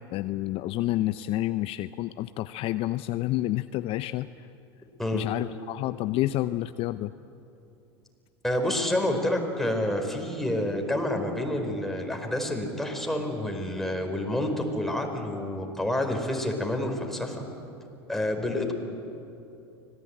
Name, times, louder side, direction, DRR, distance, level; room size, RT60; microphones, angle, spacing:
voice 1, 0.0-4.5 5.1-7.1, left 15 dB, 45° left, 13 dB, 0.6 m, -29 dB
voice 2, 8.4-17.4 18.1-18.7, left 1 dB, ahead, 3 dB, 4.5 m, -28 dB
25.0 x 19.0 x 8.9 m, 2.8 s
hypercardioid pair, 85°, 13 cm